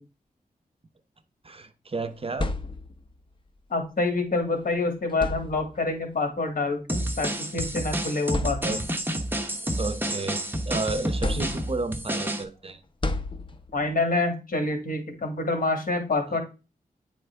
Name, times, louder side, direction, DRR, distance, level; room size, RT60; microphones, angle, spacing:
voice 1, 1.4-2.5 8.6-8.9 9.8-12.8 16.3-16.4, right 3 dB, 35° right, 10 dB, 0.6 m, -32 dB
sound 1, 2.1-3.2 4.5-4.6 5.1-6.0 7.1-7.2 7.8-7.9 8.3-9.1 9.6-10.6 11.2-12.0 13.0-13.9, left 2 dB, 30° left, 0.6 m, -32 dB
voice 2, 3.7-8.8 13.7-16.4, left 3 dB, 60° left, 4 dB, 2.0 m, -27 dB
sound 2, 6.9-12.4, right 1 dB, 15° right, 0.9 m, -29 dB
9.2 x 4.3 x 3.4 m, 0.31 s
wide cardioid pair, 90°, 16 cm